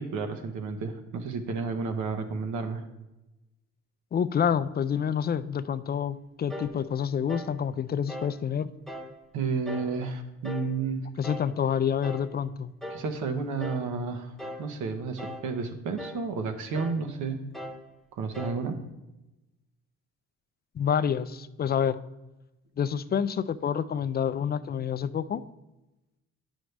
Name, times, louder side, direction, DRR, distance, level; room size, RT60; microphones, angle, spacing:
voice 1, 0.0-2.8 9.3-11.1 12.9-14.3 14.6-17.4 18.2-18.8, right 4 dB, 80° right, 6 dB, 1.0 m, -31 dB
voice 2, 4.1-8.7 11.2-12.7 20.8-22.0 22.8-25.4, left 8 dB, 35° left, 15 dB, 0.4 m, -28 dB
sound 1, 6.5-6.8 7.3-7.6 8.1-8.4 8.9-9.2 9.7-10.0 10.4-10.8 11.2-11.5 12.0-12.3 12.8-13.1 13.6-13.9 14.4-14.7 15.2-15.5 16.0-16.2 16.7-17.0 17.5-17.9 18.3-18.6, left 1 dB, ahead, 0.9 m, -39 dB
9.3 x 6.2 x 3.3 m, 1.0 s
cardioid pair, 90°, 30 cm